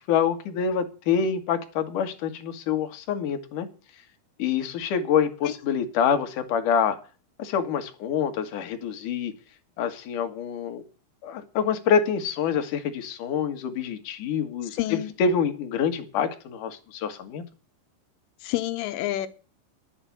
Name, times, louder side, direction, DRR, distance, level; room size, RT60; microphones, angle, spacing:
voice 1, 0.1-3.7 4.4-7.0 7.4-9.3 9.8-10.8 11.2-17.4, left 7 dB, 55° left, 2.4 m, -26 dB
voice 2, 14.8-15.1 18.4-19.3, left 14 dB, 75° left, 3.4 m, -28 dB
11.0 x 8.5 x 9.0 m
omnidirectional pair, 5.9 m